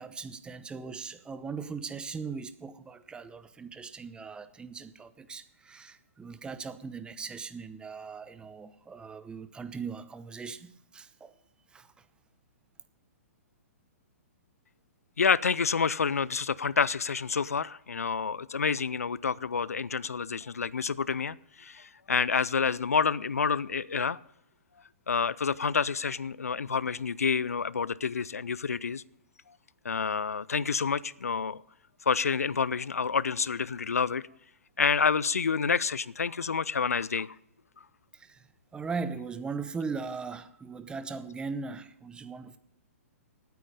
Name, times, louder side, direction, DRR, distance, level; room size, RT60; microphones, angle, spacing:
voice 1, 0.0-11.3 11.7-12.1 38.1-38.5 38.7-42.6, right 5 dB, 10° right, 0.8 m, -39 dB
voice 2, 15.2-24.2 25.1-29.0 29.8-31.6 32.1-34.2 34.8-37.3, left 5 dB, 85° left, 0.5 m, -28 dB
17.0 x 9.3 x 5.3 m
hypercardioid pair, 120°, 8 cm